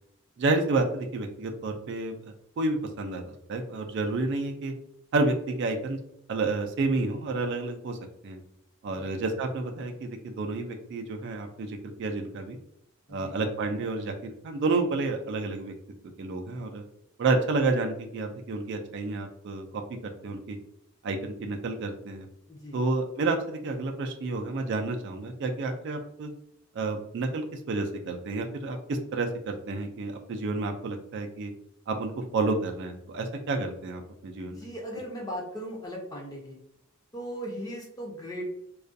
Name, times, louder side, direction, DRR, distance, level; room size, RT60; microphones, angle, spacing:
voice 1, 0.4-4.7 5.1-6.0 6.3-8.4 8.8-12.6 13.1-15.7 16.2-16.8 17.2-20.6 21.0-22.3 22.7-26.3 26.7-31.5 31.9-34.7, right 3 dB, 55° right, 4 dB, 0.3 m, -30 dB
voice 2, 22.5-22.8 34.4-36.6 37.1-38.5, equal, 15° left, -2 dB, 0.6 m, -38 dB
2.3 x 2.2 x 2.5 m, 0.76 s
head